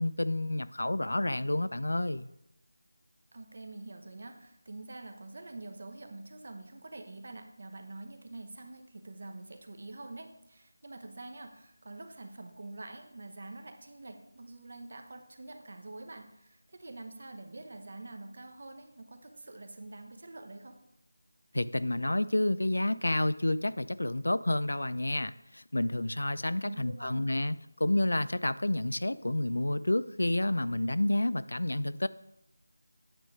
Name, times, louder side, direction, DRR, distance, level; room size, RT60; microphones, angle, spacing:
voice 1, 0.0-2.3 21.5-32.1, left 1 dB, 85° left, 16 dB, 0.3 m, -29 dB
voice 2, 3.3-20.8 26.6-27.3, right 2 dB, 50° right, 6 dB, 1.0 m, -46 dB
8.9 x 3.3 x 5.8 m, 0.83 s
figure-of-eight pair, 170°, 0 cm